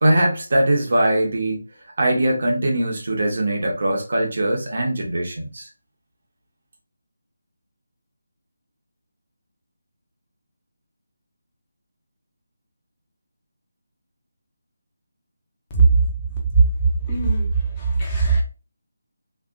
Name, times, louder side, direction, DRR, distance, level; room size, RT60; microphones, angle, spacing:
voice 1, 0.0-1.6 2.0-5.7, right 1 dB, 55° right, 0 dB, 1.2 m, -21 dB
voice 2, 17.1-18.4, right 4 dB, 20° left, -2 dB, 0.7 m, -19 dB
3.3 x 2.7 x 2.6 m, 0.32 s
figure-of-eight pair, 165°, 0 cm